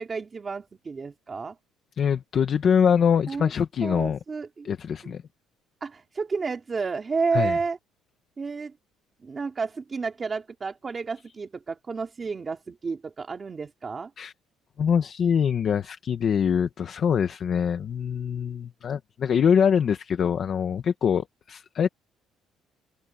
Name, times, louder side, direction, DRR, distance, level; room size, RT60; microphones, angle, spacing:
voice 1, 0.0-1.6 3.3-3.5 3.8-4.7 5.8-7.8 8.4-8.7 9.2-14.1, right 4 dB, 20° right, 2.5 m, -31 dB
voice 2, 2.0-4.2 4.6-5.2 7.3-7.6 14.2-14.3 14.8-21.9, left 7 dB, 35° left, 1.1 m, -24 dB
cardioid pair, 180°, 0 cm